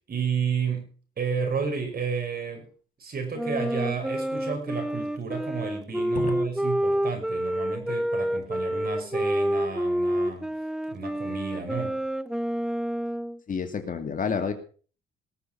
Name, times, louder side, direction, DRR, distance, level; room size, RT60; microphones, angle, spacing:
voice 1, 0.1-0.9 1.2-2.7 3.0-10.5 10.9-12.0, right 6 dB, 50° right, 4 dB, 5.7 m, -31 dB
Wind instrument woodwind instrument, 3.3-13.4, equal, 5° right, 0.7 m, -28 dB
voice 2, 13.5-14.5, left 6 dB, 40° left, 6 dB, 2.4 m, -29 dB
19.0 x 7.2 x 6.1 m, 0.41 s
cardioid pair, 90°, 20 cm